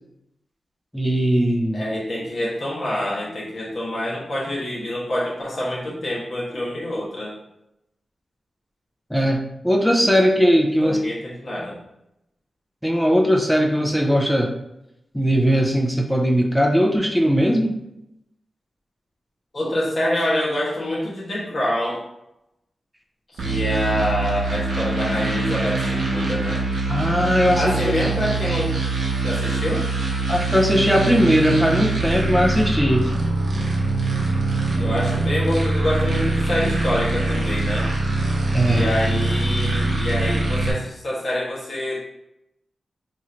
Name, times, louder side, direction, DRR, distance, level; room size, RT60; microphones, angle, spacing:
voice 1, 0.9-1.8 9.1-11.0 12.8-14.5 15.1-17.8 26.9-27.6 30.3-33.0 38.5-38.9, equal, 5° left, 0 dB, 0.4 m, -19 dB
voice 2, 1.7-7.3 10.8-11.8 19.5-22.0 23.3-26.6 27.5-28.8 29.2-29.8 34.7-37.9 38.7-42.0, left 1 dB, 50° left, -6 dB, 1.2 m, -26 dB
sound 1, 23.4-40.7, right 3 dB, 70° right, 0.8 m, -23 dB
2.9 x 2.5 x 4.3 m, 0.86 s
wide cardioid pair, 120°, 0 cm